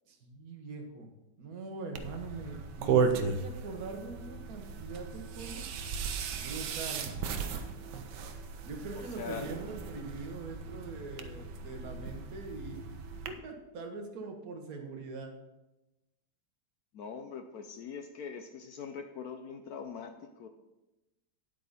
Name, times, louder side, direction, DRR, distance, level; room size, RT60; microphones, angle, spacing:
voice 1, 0.1-1.1 1.4-5.6 6.4-7.1 8.6-12.8 13.3-15.3, right 3 dB, 50° right, 3 dB, 1.5 m, -42 dB
sound 1, 1.9-13.3, right 5 dB, 65° right, 1.2 m, -35 dB
voice 2, 9.2-9.5 16.9-20.5, left 6 dB, 75° left, 7 dB, 0.8 m, -42 dB
9.5 x 8.4 x 4.1 m, 0.99 s
omnidirectional pair, 2.3 m